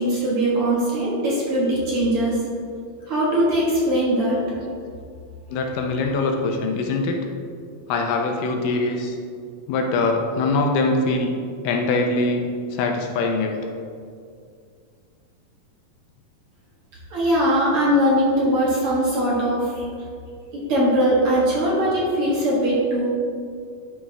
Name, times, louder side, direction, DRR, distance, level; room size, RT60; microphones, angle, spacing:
voice 1, 0.0-2.4 3.1-4.4 17.1-19.8 20.7-23.0, equal, 50° right, -6 dB, 1.9 m, -20 dB
voice 2, 5.5-7.2 7.9-9.2 9.7-11.3 11.6-13.6, left 3 dB, 80° left, 3 dB, 2.2 m, -23 dB
11.5 x 4.6 x 3.3 m, 2.3 s
omnidirectional pair, 4.0 m